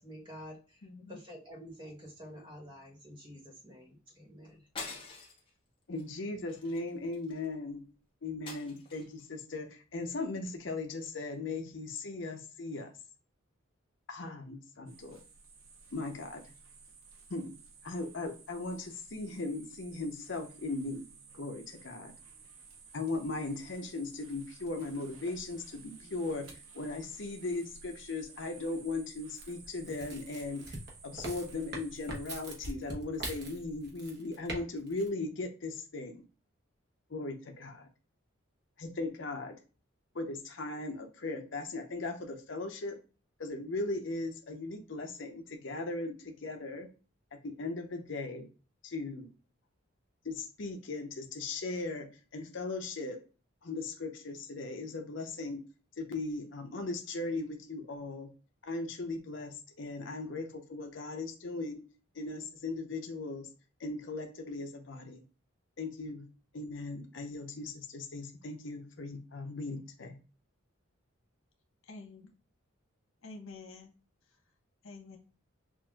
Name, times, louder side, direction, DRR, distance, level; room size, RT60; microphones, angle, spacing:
voice 1, 0.0-0.8 1.1-4.7, equal, 25° right, -1 dB, 1.4 m, -49 dB
voice 2, 0.8-1.2 71.8-72.3 73.2-73.9 74.8-75.2, left 3 dB, 85° left, 2 dB, 1.1 m, -48 dB
sound 1, 4.8-5.5 6.0-6.2 6.5-7.5 8.5-9.2, left 4 dB, 25° left, 0.9 m, -45 dB
voice 3, 5.9-7.8 8.2-12.9 14.1-15.2 15.9-16.4 17.3-17.5 17.8-21.1 21.3-22.1 22.9-30.8 31.0-36.2 37.1-37.9 38.8-39.6 40.1-43.0 43.4-46.9 47.4-48.5 48.8-49.3 50.2-52.1 52.3-53.2 53.6-55.6 56.0-58.3 58.6-61.8 62.1-63.5 63.8-65.2 65.8-66.3 66.5-70.2, left 3 dB, 60° left, 4 dB, 0.7 m, -38 dB
sound 2, 14.9-32.6, right 4 dB, 85° right, 0.8 m, -54 dB
sound 3, 29.4-34.6 34.9-35.1, right 2 dB, 50° right, 1.1 m, -42 dB
5.9 x 2.5 x 2.3 m, 0.35 s
head